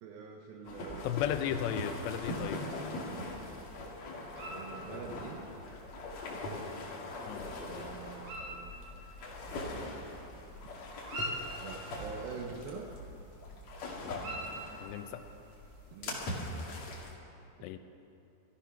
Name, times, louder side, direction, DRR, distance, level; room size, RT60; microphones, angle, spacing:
voice 1, 0.0-1.1 4.5-5.5 7.6-8.8 11.6-12.9 15.9-16.5 17.2-17.3, right 5 dB, 75° right, 2 dB, 2.2 m, -45 dB
sound 1, 0.7-17.1, left 2 dB, 50° left, 2.6 m, -41 dB
voice 2, 1.0-2.6 7.3-7.5 14.0-14.2 14.8-15.2 17.6-17.8, left 10 dB, 80° left, 9 dB, 2.8 m, -35 dB
sound 2, 1.9-17.1, equal, 50° right, 5.5 m, -48 dB
14.5 x 14.0 x 5.9 m, 2.7 s
omnidirectional pair, 5.1 m